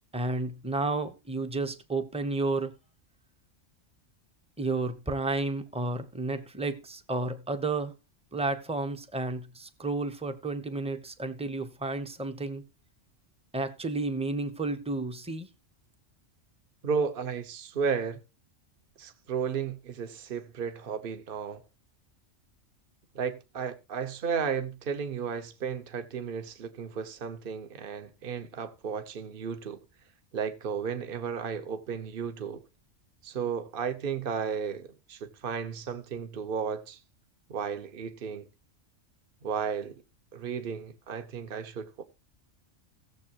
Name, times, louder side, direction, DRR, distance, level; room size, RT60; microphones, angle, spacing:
voice 1, 0.1-2.7 4.6-7.9 8.3-12.6 13.5-15.5, right 3 dB, 5° right, 0.7 m, -31 dB
voice 2, 16.8-18.2 19.0-21.6 23.1-29.8 30.3-32.6 33.2-37.0 37.5-38.5 39.4-40.0 40.3-42.0, right 6 dB, 50° right, 1.1 m, -33 dB
17.5 x 7.2 x 2.9 m
omnidirectional pair, 1.3 m